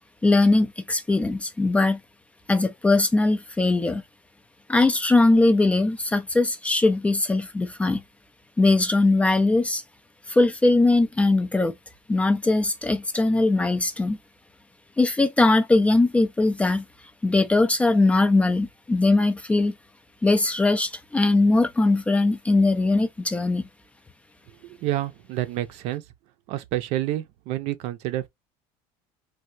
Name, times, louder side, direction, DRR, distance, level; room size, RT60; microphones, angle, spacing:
voice 1, 0.2-2.0 2.5-4.0 4.7-8.0 8.6-9.8 10.3-11.7 12.1-14.2 15.0-16.8 17.2-19.7 20.2-23.7, left 2 dB, 10° left, 0.3 m, -20 dB
voice 2, 24.6-26.0 26.5-28.3, right 14 dB, 65° right, 0.6 m, -29 dB
3.3 x 2.3 x 2.6 m
cardioid pair, 140°, 12 cm